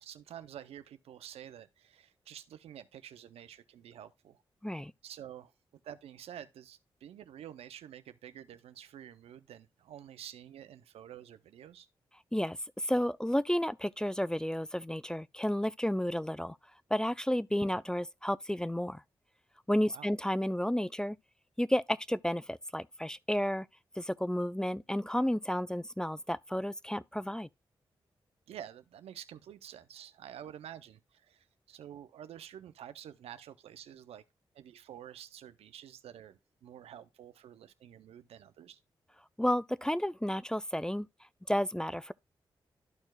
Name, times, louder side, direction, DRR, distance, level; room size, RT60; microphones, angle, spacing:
voice 1, 0.0-4.4 5.0-5.5 5.8-11.9 17.6-17.7 19.9-20.1 28.5-34.2 34.5-38.8, right 10 dB, 85° right, 0.5 m, -49 dB
voice 2, 12.3-16.6 16.9-19.0 19.7-21.2 21.6-23.7 24.0-27.5 39.4-41.1 41.5-42.1, equal, 5° left, 0.4 m, -32 dB
13.0 x 4.4 x 2.2 m
supercardioid pair, 40°, 10 cm